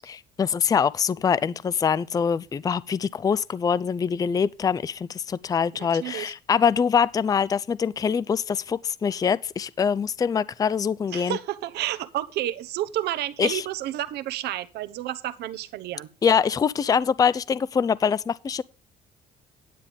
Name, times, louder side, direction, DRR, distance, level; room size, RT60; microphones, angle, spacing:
voice 1, 0.1-11.4 13.4-13.6 16.2-18.6, left 6 dB, 20° left, 0.4 m, -24 dB
voice 2, 6.0-6.3 11.1-16.1, right 13 dB, 75° right, 0.9 m, -30 dB
10.0 x 9.1 x 3.4 m
cardioid pair, 110°, 17 cm